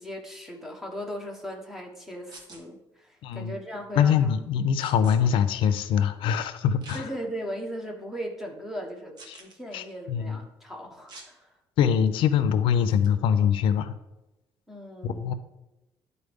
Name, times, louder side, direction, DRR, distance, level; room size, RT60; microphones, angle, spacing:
voice 1, 0.0-4.3 6.9-11.5 14.7-15.3, equal, 5° right, 1 dB, 1.2 m, -38 dB
sound 1, 2.3-2.6 4.8-5.2 6.8-7.0 7.7-7.8 9.2-9.6 11.1-11.3 12.9-13.1, right 3 dB, 55° right, 1.3 m, -46 dB
voice 2, 3.2-3.6 3.9-7.0 9.3-9.4 9.7-10.4 11.8-13.9 15.0-15.3, left 8 dB, 85° left, 12 dB, 0.5 m, -23 dB
11.0 x 4.1 x 3.5 m, 0.97 s
cardioid pair, 135°, 9 cm